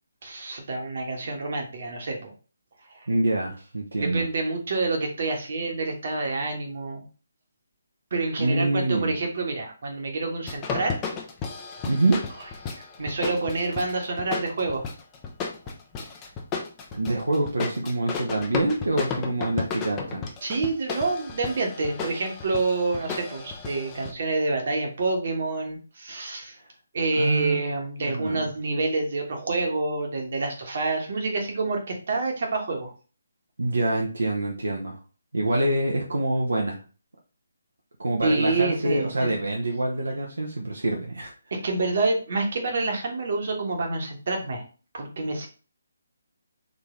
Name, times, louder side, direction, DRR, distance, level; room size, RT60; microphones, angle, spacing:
voice 1, 0.2-2.3 2.9-3.0 4.0-7.0 8.1-11.0 12.7-14.9 20.4-26.6 26.9-32.9 38.2-39.3 41.5-44.6 44.9-45.5, right 3 dB, 50° right, 1 dB, 1.4 m, -27 dB
voice 2, 3.1-4.3 8.4-9.1 11.8-12.2 16.9-20.2 27.2-27.6 28.0-28.4 33.6-35.0 35.3-36.8 38.0-41.3, right 2 dB, 75° right, -1 dB, 0.9 m, -25 dB
sound 1, 10.5-24.1, left 5 dB, 20° left, 0.6 m, -34 dB
3.9 x 2.9 x 3.6 m, 0.36 s
figure-of-eight pair, 145°, 0 cm